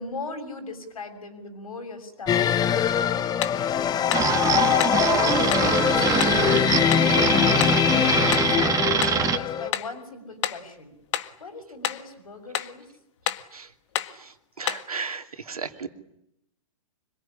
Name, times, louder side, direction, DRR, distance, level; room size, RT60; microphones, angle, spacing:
voice 1, 0.0-5.4 5.8-8.8 9.1-10.9 11.4-12.9, left 3 dB, 80° left, 7 dB, 6.8 m, -40 dB
sound 1, 2.3-9.7, left 9 dB, 20° left, 1.0 m, -23 dB
sound 2, 3.4-3.7 4.1-4.3 4.8-5.0 5.5-5.7 6.2-6.4 6.9-7.1 7.6-7.8 8.3-8.5 9.0-9.2 9.7-10.0 10.4-10.7 11.1-11.4 11.8-12.1 12.5-12.8 13.3-13.5 13.9-14.2 14.7-14.9, left 11 dB, 55° left, 1.7 m, -30 dB
sound 3, 4.1-9.4, right 7 dB, 20° right, 1.8 m, -24 dB
voice 2, 14.6-15.9, right 5 dB, 90° right, 7 dB, 2.7 m, -35 dB
25.5 x 22.5 x 10.0 m, 0.81 s
hypercardioid pair, 120°, 18 cm